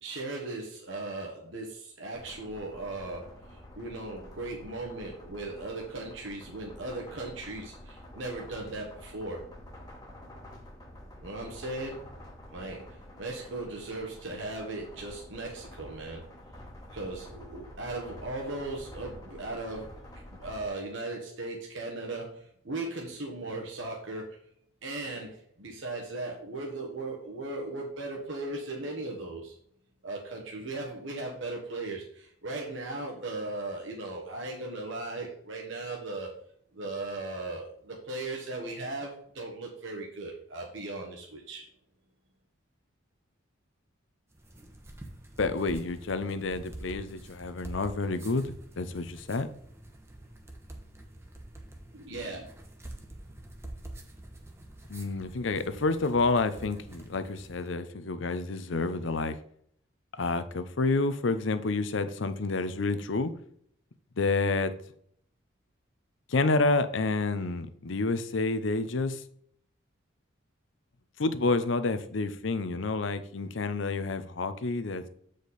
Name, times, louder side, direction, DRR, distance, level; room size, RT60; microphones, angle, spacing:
voice 1, 0.0-9.4 11.2-12.0 12.5-16.2 16.9-24.4 24.8-29.6 30.0-36.3 36.7-41.6 51.9-52.5, right 2 dB, 70° right, 1.3 m, -37 dB
sound 1, 2.1-20.7, left 1 dB, 20° left, 1.3 m, -48 dB
sound 2, 44.3-57.8, right 1 dB, 15° right, 0.9 m, -47 dB
voice 2, 45.4-49.5 54.9-59.4 60.2-63.3 64.2-64.7 66.3-69.2 71.2-75.0, left 3 dB, 70° left, 0.6 m, -29 dB
8.2 x 5.0 x 4.1 m
head